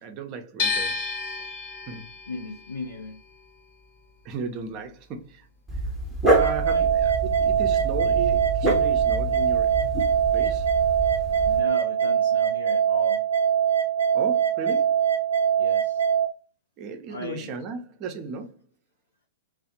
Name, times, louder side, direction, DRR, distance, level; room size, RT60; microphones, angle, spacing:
voice 1, 0.0-1.0 1.9-2.0 4.2-5.5 6.3-9.8 10.3-10.7 14.1-15.0 16.8-18.6, right 4 dB, 35° right, 0.5 m, -35 dB
sound 1, 0.6-6.6 6.9-8.2, left 4 dB, 55° left, 1.1 m, -33 dB
voice 2, 2.3-3.2 6.4-6.9 11.4-13.2 15.6-16.0 17.1-17.5, left 3 dB, 80° left, 0.4 m, -37 dB
Dog, 5.7-11.6, right 1 dB, ahead, 0.7 m, -28 dB
sound 2, 6.2-16.3, right 8 dB, 85° right, 0.5 m, -22 dB
2.4 x 2.0 x 2.7 m
figure-of-eight pair, 105°, 0 cm